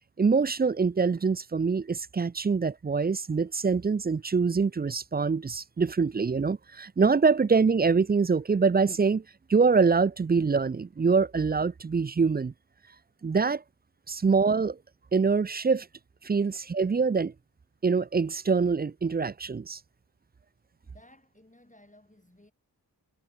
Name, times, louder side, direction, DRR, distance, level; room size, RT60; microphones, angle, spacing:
voice 1, 0.2-9.2 9.5-12.5 13.2-13.6 14.1-14.8 15.1-15.9 16.2-17.3 17.8-19.8, right 5 dB, 25° right, 0.3 m, -24 dB
voice 2, 20.8-22.5, left 1 dB, 20° left, 5.3 m, -57 dB
wide cardioid pair, 80°, 41 cm